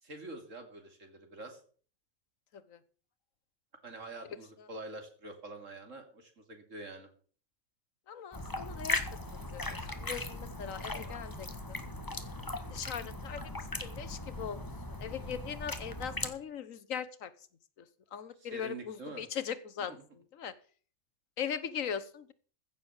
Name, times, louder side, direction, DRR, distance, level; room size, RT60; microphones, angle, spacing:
voice 1, 0.0-1.6 3.8-7.1 18.4-19.2 19.9-20.0, right 2 dB, 75° right, 5 dB, 3.2 m, -46 dB
voice 2, 8.1-9.0 9.5-11.8 12.7-17.3 17.8-17.9 18.1-20.5 21.4-22.3, left 8 dB, 85° left, 15 dB, 1.5 m, -40 dB
sound 1, 8.3-16.3, left 2 dB, 15° left, 1.3 m, -38 dB
15.5 x 7.2 x 7.2 m, 0.44 s
omnidirectional pair, 1.3 m